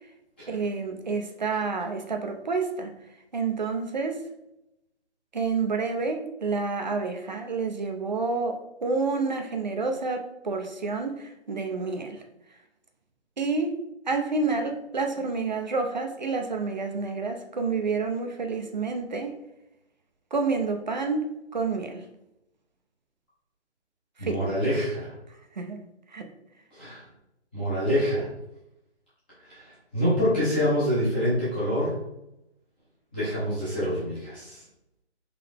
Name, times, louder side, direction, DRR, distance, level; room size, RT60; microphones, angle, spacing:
voice 1, 0.5-2.9 3.3-4.2 5.3-12.2 13.4-13.8 14.1-19.3 20.3-21.2 21.5-22.0 24.2-24.5 25.5-25.8 26.1-26.3, right 4 dB, 40° right, 5 dB, 0.5 m, -29 dB
voice 2, 24.2-25.1 26.7-27.0 27.5-28.3 29.4-31.9 33.1-34.6, equal, 10° left, -12 dB, 0.7 m, -26 dB
3.9 x 3.3 x 3.4 m, 0.87 s
hypercardioid pair, 165°, 35 cm